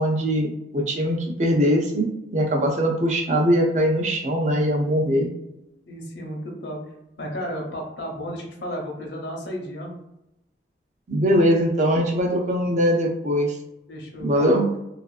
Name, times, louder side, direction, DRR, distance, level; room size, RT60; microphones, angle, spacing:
voice 1, 0.0-5.3 11.1-13.5 14.2-14.6, equal, 40° right, 1 dB, 0.4 m, -21 dB
voice 2, 5.9-6.8 7.2-9.9 13.9-14.6, equal, 80° left, 0 dB, 0.7 m, -33 dB
2.4 x 2.3 x 2.3 m, 0.85 s
head